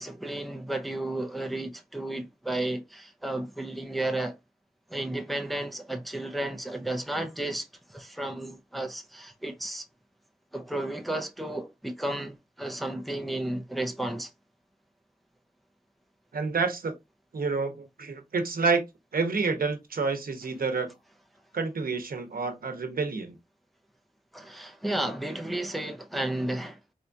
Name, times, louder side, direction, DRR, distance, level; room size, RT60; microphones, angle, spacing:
voice 1, 0.0-4.3 4.9-9.9 10.5-14.3 24.3-26.8, right 1 dB, ahead, 0.5 m, -33 dB
voice 2, 16.3-16.9 17.3-18.9 19.1-20.9 21.5-23.3, right 4 dB, 80° right, 0.9 m, -28 dB
4.2 x 2.3 x 2.6 m
wide cardioid pair, 85°, 15 cm